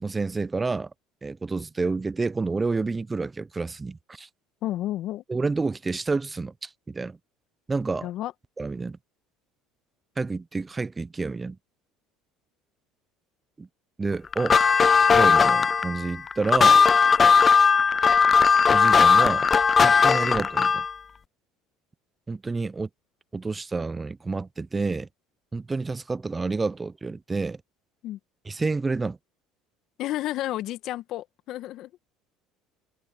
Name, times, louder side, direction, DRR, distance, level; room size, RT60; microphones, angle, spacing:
voice 1, 0.0-0.9 1.2-4.3 5.3-7.2 7.7-8.1 8.6-9.0 10.2-11.6 13.6-13.7 14.0-14.6 15.1-16.8 18.7-19.5 19.8-20.8 22.3-22.9 23.3-25.1 25.5-27.6 28.5-29.2, right 3 dB, 20° right, 0.6 m, -29 dB
voice 2, 4.6-5.2 8.0-8.3 28.0-28.2 30.0-31.9, left 14 dB, 60° left, 1.7 m, -31 dB
sound 1, 14.3-20.9, left 5 dB, 30° left, 0.5 m, -18 dB
hypercardioid pair, 75°, 0 cm